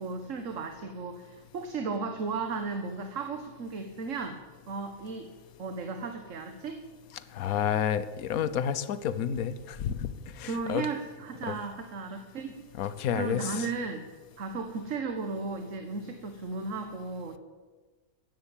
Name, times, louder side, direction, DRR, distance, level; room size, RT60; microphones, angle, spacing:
voice 1, 0.0-4.4 4.7-5.3 5.6-6.8 10.4-12.6 13.1-14.0 14.4-17.4, right 4 dB, 60° right, 6 dB, 1.6 m, -35 dB
voice 2, 7.3-10.1 10.4-10.9 11.5-11.6 12.8-13.7, left 8 dB, 75° left, 14 dB, 1.3 m, -30 dB
14.5 x 11.0 x 9.0 m, 1.3 s
omnidirectional pair, 1.5 m